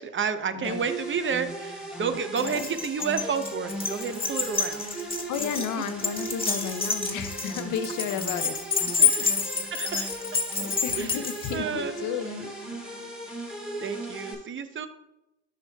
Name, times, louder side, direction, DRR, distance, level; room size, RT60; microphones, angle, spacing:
voice 1, 0.0-4.8 9.1-9.4 9.7-10.3 11.0-11.2 11.5-12.0 13.8-14.9, right 6 dB, 40° right, 10 dB, 0.7 m, -30 dB
voice 2, 0.5-0.8 2.4-2.6 4.9-5.0 5.3-8.6 9.0-9.3 10.6-12.5, left 8 dB, 85° left, 11 dB, 0.6 m, -33 dB
sound 1, 0.6-14.3, right 1 dB, 5° right, 1.8 m, -37 dB
Keys jangling, 2.4-11.6, left 6 dB, 15° left, 1.5 m, -28 dB
10.0 x 5.8 x 2.3 m, 0.92 s
cardioid pair, 90°, 30 cm